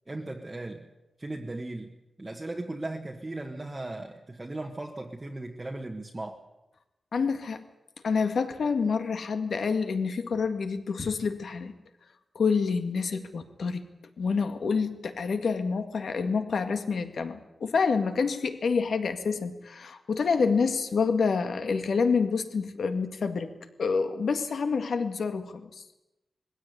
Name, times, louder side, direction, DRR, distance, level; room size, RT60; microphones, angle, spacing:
voice 1, 0.1-0.9 1.2-6.4, right 2 dB, 20° right, 0 dB, 1.4 m, -37 dB
voice 2, 7.1-7.6 8.0-11.7 12.4-13.8 14.2-23.5 23.8-25.8, left 5 dB, 70° left, 7 dB, 2.0 m, -27 dB
21.5 x 16.0 x 9.5 m, 0.96 s
wide cardioid pair, 175°, 0 cm